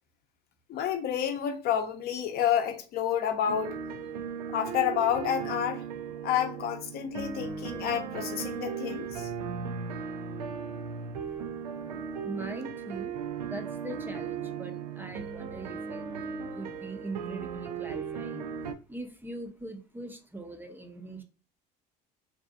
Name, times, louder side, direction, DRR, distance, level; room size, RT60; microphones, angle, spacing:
voice 1, 0.7-3.8 4.5-5.8 6.2-9.3, left 9 dB, 50° left, 0.6 m, -29 dB
sound 1, 3.5-18.7, right 6 dB, 90° right, 0.4 m, -37 dB
voice 2, 12.2-16.1 16.5-18.5 18.9-21.2, right 2 dB, 10° right, 0.5 m, -41 dB
2.7 x 2.4 x 2.4 m
hypercardioid pair, 75°, 20 cm